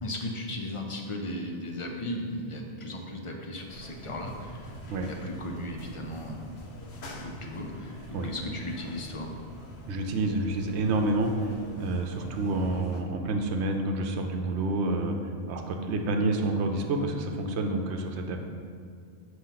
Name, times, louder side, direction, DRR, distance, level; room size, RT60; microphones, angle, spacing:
voice 1, 0.0-4.7 5.0-6.4 7.1-9.3, left 1 dB, 35° left, 2 dB, 0.6 m, -36 dB
sound 1, 3.7-13.0, equal, 70° left, 1.0 m, -44 dB
voice 2, 9.9-18.4, right 2 dB, 75° right, 4 dB, 0.9 m, -28 dB
6.8 x 3.1 x 5.7 m, 2.3 s
omnidirectional pair, 1.2 m